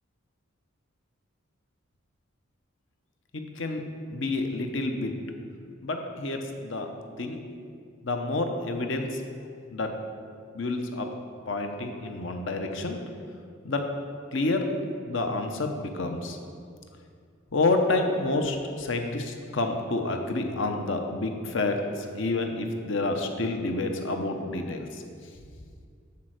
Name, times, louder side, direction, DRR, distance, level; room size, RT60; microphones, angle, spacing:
voice 1, 3.3-3.8 4.1-5.1 5.8-6.9 7.2-7.4 8.0-9.2 9.7-9.9 10.5-11.1 11.5-13.0 13.6-13.8 14.3-14.6 15.1-16.4 17.5-24.9, left 2 dB, 60° left, 5 dB, 0.8 m, -28 dB
11.0 x 4.4 x 6.4 m, 2.2 s
head